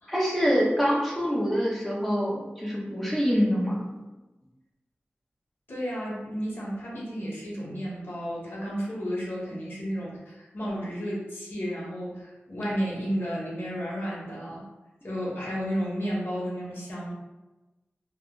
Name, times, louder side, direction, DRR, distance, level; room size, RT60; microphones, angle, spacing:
voice 1, 0.1-4.0, equal, ahead, -5 dB, 0.8 m, -25 dB
voice 2, 5.7-14.6 15.0-17.1, equal, 60° left, -5 dB, 1.0 m, -32 dB
2.4 x 2.0 x 3.7 m, 1.1 s
cardioid pair, 45°, 4 cm